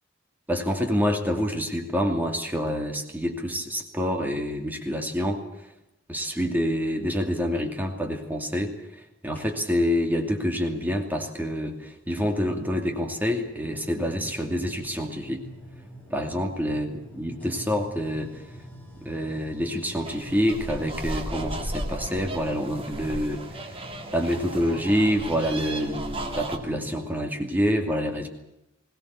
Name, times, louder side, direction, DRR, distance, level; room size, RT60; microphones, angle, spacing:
voice 1, 0.5-5.4 6.1-15.4 16.1-18.4 19.0-23.8 24.1-28.3, equal, 10° right, 3 dB, 2.6 m, -27 dB
sound 1, 9.3-10.0 11.3-11.4 12.2-27.2, equal, 10° left, 7.7 m, -46 dB
sound 2, 20.0-26.6, right 1 dB, 30° right, 2.3 m, -35 dB
22.0 x 18.0 x 8.3 m, 0.89 s
head